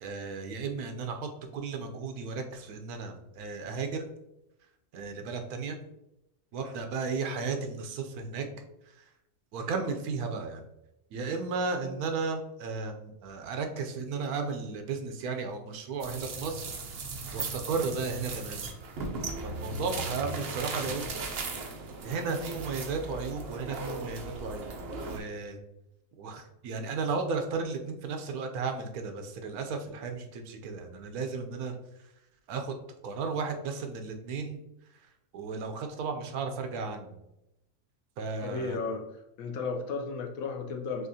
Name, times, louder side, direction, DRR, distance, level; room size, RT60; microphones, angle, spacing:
voice 1, 0.0-4.1 4.9-5.8 6.5-8.5 9.0-9.1 9.5-10.6 11.1-16.7 17.3-18.7 19.4-21.2 22.0-24.7 25.1-25.6 26.2-31.7 32.5-32.7 33.0-34.6 35.3-37.2 38.2-38.8, right 4 dB, 80° right, 5 dB, 1.1 m, -34 dB
sound 1, 16.0-25.2, right 3 dB, 60° right, 0.6 m, -37 dB
voice 2, 38.4-39.0 39.4-41.1, left 4 dB, 70° left, 3 dB, 1.0 m, -34 dB
6.2 x 2.4 x 2.7 m, 0.88 s
omnidirectional pair, 1.6 m